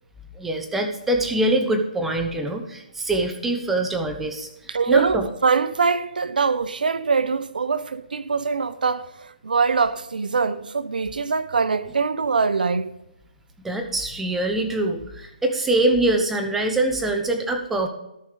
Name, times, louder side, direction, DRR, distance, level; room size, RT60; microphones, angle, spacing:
voice 1, 0.3-5.3 13.6-17.9, right 2 dB, 5° right, 0.9 m, -24 dB
voice 2, 4.7-12.9, right 5 dB, 85° right, 0.8 m, -23 dB
13.5 x 5.3 x 5.0 m
hypercardioid pair, 160°, 5 cm